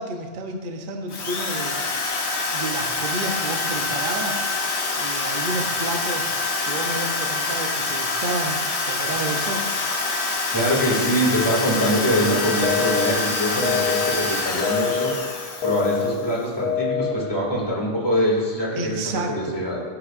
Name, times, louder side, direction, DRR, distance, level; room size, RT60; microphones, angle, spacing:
voice 1, 0.0-1.9 2.5-6.4 6.6-9.7 18.8-19.6, right 2 dB, 45° right, 3 dB, 0.8 m, -31 dB
Drill, 1.1-16.3, left 3 dB, 60° left, 1.2 m, -26 dB
voice 2, 10.5-15.1 15.6-19.8, equal, 20° left, -5 dB, 2.4 m, -23 dB
sound 1, 12.6-13.1 13.6-14.1 14.6-15.1 15.6-16.1 16.6-17.1, left 7 dB, 85° left, 1.3 m, -24 dB
13.0 x 7.9 x 2.5 m, 1.5 s
omnidirectional pair, 1.3 m